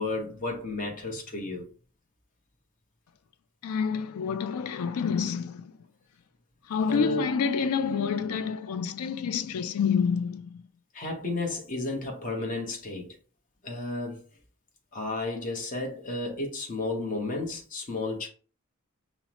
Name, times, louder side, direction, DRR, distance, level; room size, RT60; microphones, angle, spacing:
voice 1, 0.0-1.6 6.9-7.2 10.9-13.2 13.6-14.2 14.9-18.3, left 2 dB, 35° left, 0.8 m, -32 dB
voice 2, 3.6-5.7 6.7-10.6, left 6 dB, 80° left, 0.4 m, -28 dB
5.5 x 2.0 x 2.9 m
head